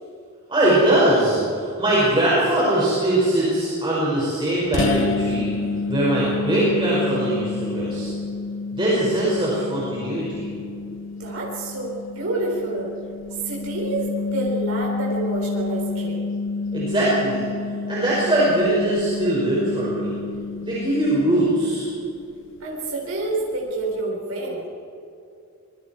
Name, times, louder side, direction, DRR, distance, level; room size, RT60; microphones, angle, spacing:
voice 1, 0.5-5.5 5.9-8.1 8.7-10.5 16.7-17.5 17.9-20.2 20.6-21.9, right 1 dB, 25° right, -8 dB, 5.8 m, -21 dB
sound 1, 4.7-22.2, left 3 dB, 60° left, 0.6 m, -29 dB
voice 2, 11.2-13.0 13.4-16.2 22.6-24.7, right 2 dB, 90° right, -3 dB, 4.4 m, -28 dB
26.0 x 22.5 x 4.6 m, 2.6 s
head